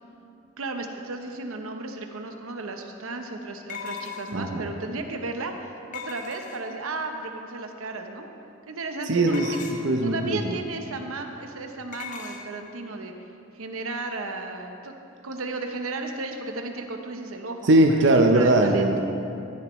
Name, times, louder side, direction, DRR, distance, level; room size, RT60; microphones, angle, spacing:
voice 1, 0.6-8.3 8.7-9.6 10.0-13.1 13.5-14.9 15.2-18.9, right 3 dB, 90° right, 4 dB, 0.8 m, -34 dB
sound 1, 2.1-2.2 3.7-4.5 5.9-6.8 9.3-10.0 11.9-12.4, left 6 dB, 40° left, 0.8 m, -38 dB
voice 2, 4.3-4.7 9.1-10.6 17.7-19.0, right 1 dB, 60° right, 3 dB, 0.6 m, -20 dB
12.5 x 10.0 x 3.1 m, 2.7 s
head